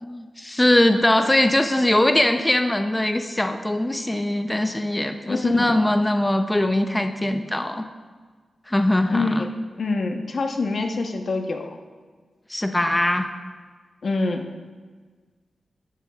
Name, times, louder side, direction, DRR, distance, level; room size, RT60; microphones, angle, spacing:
voice 1, 0.0-7.8 8.7-9.5 12.5-13.3, left 1 dB, 15° left, 7 dB, 0.6 m, -21 dB
voice 2, 5.3-5.8 9.1-9.5 9.8-11.7 14.0-14.4, left 3 dB, 65° left, 3 dB, 1.0 m, -25 dB
14.0 x 12.0 x 2.4 m, 1.5 s
cardioid pair, 60°, 0 cm